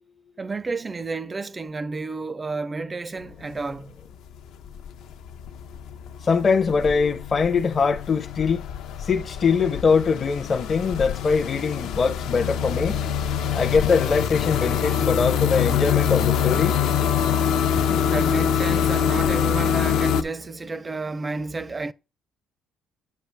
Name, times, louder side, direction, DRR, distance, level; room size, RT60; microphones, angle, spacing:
voice 1, 0.4-3.9 18.1-21.9, right 3 dB, 20° right, 0.4 m, -31 dB
sound 1, 3.2-3.7 4.0-20.2, left 8 dB, 75° left, 0.6 m, -25 dB
voice 2, 6.3-8.6 9.1-12.9 13.5-16.7, left 5 dB, 30° left, 0.6 m, -22 dB
7.7 x 6.4 x 3.3 m
cardioid pair, 135°, 0 cm